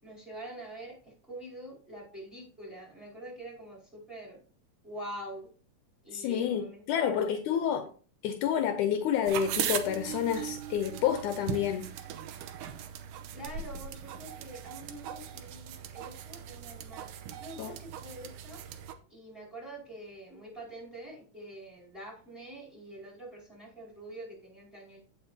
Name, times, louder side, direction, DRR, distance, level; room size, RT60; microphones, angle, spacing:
voice 1, 0.0-4.4 4.8-5.5 6.0-7.7 13.3-17.1 17.4-18.6 19.1-25.0, right 1 dB, ahead, 4.4 m, -45 dB
voice 2, 6.1-7.9 8.2-11.9 17.6-17.7, left 9 dB, 75° left, 2.1 m, -29 dB
sound 1, 9.3-19.0, right 9 dB, 85° right, 2.3 m, -39 dB
16.0 x 5.8 x 2.8 m
omnidirectional pair, 3.7 m